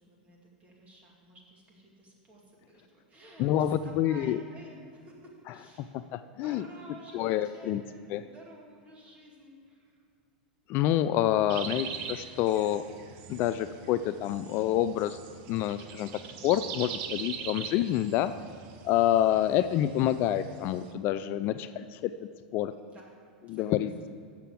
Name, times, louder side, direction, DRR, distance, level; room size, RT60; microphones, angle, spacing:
voice 1, 0.0-5.9 6.4-10.0 16.2-16.5 22.7-23.1 23.5-24.1, right 1 dB, 30° right, -2 dB, 2.5 m, -52 dB
voice 2, 3.4-4.4 5.8-6.6 7.1-7.8 8.1-8.2 10.7-12.8 13.3-15.2 15.5-16.1 16.4-18.3 18.8-22.1 22.5-22.7 23.5-24.1, left 12 dB, 45° left, 12 dB, 0.3 m, -27 dB
sound 1, 11.5-20.9, right 7 dB, 55° right, 0.8 m, -42 dB
7.0 x 6.7 x 7.6 m, 2.2 s
hypercardioid pair, 105°, 5 cm